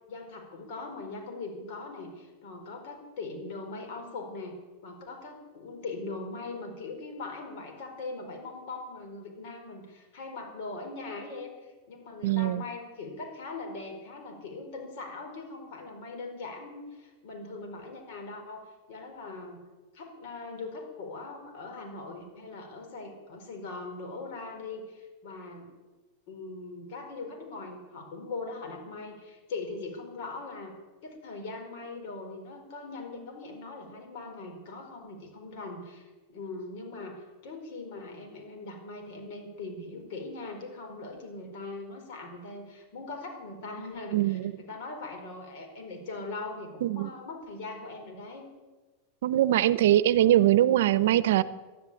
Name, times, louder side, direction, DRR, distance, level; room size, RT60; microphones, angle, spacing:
voice 1, 0.1-18.6 18.9-19.6 19.9-25.7 26.3-30.7 31.0-48.5, left 3 dB, 60° left, 3 dB, 4.6 m, -41 dB
voice 2, 12.2-12.6 44.1-44.5 46.8-47.1 49.2-51.4, right 13 dB, 75° right, 17 dB, 0.7 m, -22 dB
12.5 x 12.0 x 8.4 m, 1.2 s
supercardioid pair, 135°, 0 cm